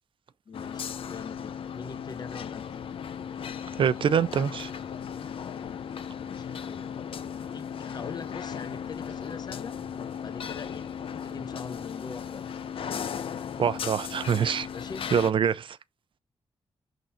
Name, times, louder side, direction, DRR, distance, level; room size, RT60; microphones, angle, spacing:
sound 1, 0.5-15.3, left 7 dB, 70° left, 0.7 m, -36 dB
voice 1, 0.5-2.8 6.2-7.0 7.3-9.7 10.2-12.5 14.7-15.1, left 5 dB, 45° left, 0.9 m, -43 dB
voice 2, 3.8-4.7 13.6-14.7 15.1-15.8, right 7 dB, 65° right, 0.6 m, -25 dB
6.7 x 3.8 x 4.4 m
wide cardioid pair, 145°, 9 cm